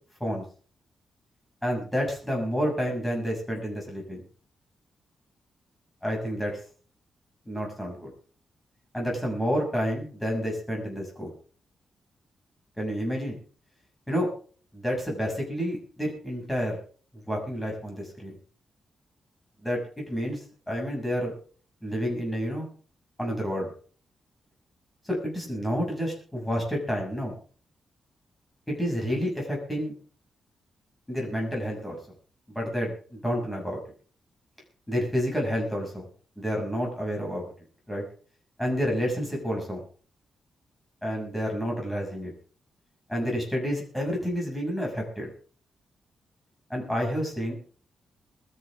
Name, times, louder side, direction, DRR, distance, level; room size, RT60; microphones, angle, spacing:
voice 1, 1.6-4.2 6.0-6.5 7.4-8.1 8.9-11.3 12.8-13.4 14.1-14.3 14.7-16.8 17.3-18.4 19.6-21.3 21.8-22.7 23.2-23.7 25.0-27.3 28.7-29.9 31.1-32.0 32.5-33.8 34.9-36.0 36.4-37.5 37.9-38.0 38.6-39.8 41.0-42.3 43.1-45.3 46.7-47.5, equal, 5° left, -1 dB, 6.5 m, -29 dB
22.0 x 13.5 x 3.6 m, 0.42 s
wide cardioid pair, 155°, 0 cm